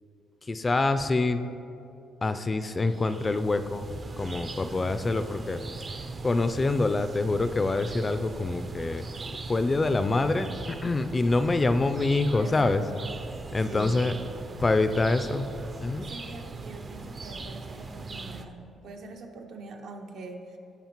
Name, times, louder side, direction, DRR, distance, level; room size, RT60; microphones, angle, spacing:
voice 1, 0.5-1.4 2.2-3.9 4.2-5.6 6.2-9.1 9.5-12.8 13.5-14.1 14.6-15.5 15.8-16.1, left 2 dB, 25° left, 10 dB, 0.3 m, -25 dB
sound 1, 2.7-18.5, right 3 dB, 35° right, 0.4 m, -40 dB
voice 2, 12.4-13.1 13.7-14.3 16.0-20.6, right 2 dB, 75° right, 3 dB, 0.7 m, -43 dB
13.0 x 5.2 x 3.0 m, 2.8 s
cardioid pair, 90°, 0 cm